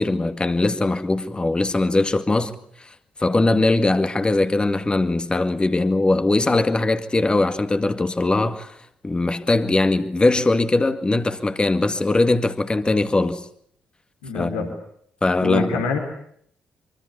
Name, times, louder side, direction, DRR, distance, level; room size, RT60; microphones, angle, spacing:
voice 1, 0.0-2.9 3.2-8.8 9.0-13.5 14.3-14.7 15.2-15.8, left 2 dB, 25° left, 2.0 m, -21 dB
voice 2, 14.2-14.6 15.4-16.0, left 5 dB, 90° left, 4.4 m, -25 dB
24.5 x 24.5 x 8.4 m
hypercardioid pair, 45°, 4 cm